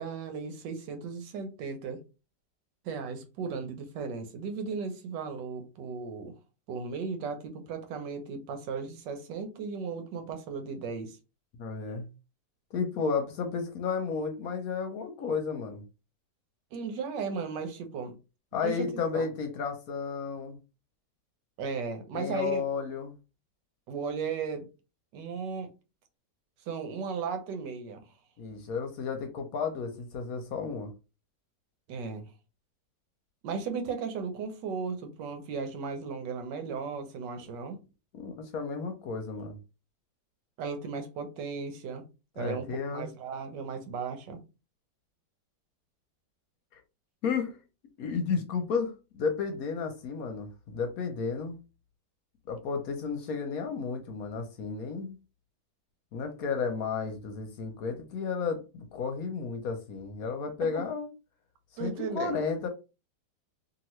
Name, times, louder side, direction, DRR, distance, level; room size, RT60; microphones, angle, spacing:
voice 1, 0.0-2.0 2.8-6.3 6.7-11.2 16.7-18.2 18.6-19.3 21.6-22.6 23.9-24.7 25.1-25.7 26.7-28.1 31.9-32.3 33.4-37.8 40.6-42.0 42.4-44.4 60.6-60.9 61.8-62.4, right 5 dB, 90° right, 1.4 m, -36 dB
voice 2, 11.6-12.1 12.7-15.8 18.5-20.6 22.1-23.1 28.4-30.9 38.1-39.6 42.4-43.1 46.7-46.8 47.2-47.6 48.0-51.6 52.5-55.2 56.1-61.1 61.8-62.7, left 5 dB, 65° left, 1.0 m, -32 dB
2.9 x 2.7 x 3.0 m
omnidirectional pair, 1.8 m